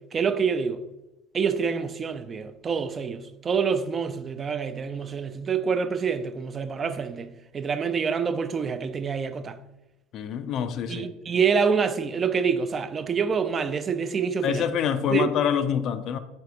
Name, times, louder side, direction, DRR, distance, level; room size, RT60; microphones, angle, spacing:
voice 1, 0.1-0.8 1.3-9.6 10.9-14.7 15.1-15.3, right 6 dB, 35° right, 0.3 m, -26 dB
voice 2, 10.1-11.1 14.4-16.2, left 8 dB, 50° left, 0.3 m, -26 dB
4.5 x 4.0 x 2.3 m
figure-of-eight pair, 65°, 0 cm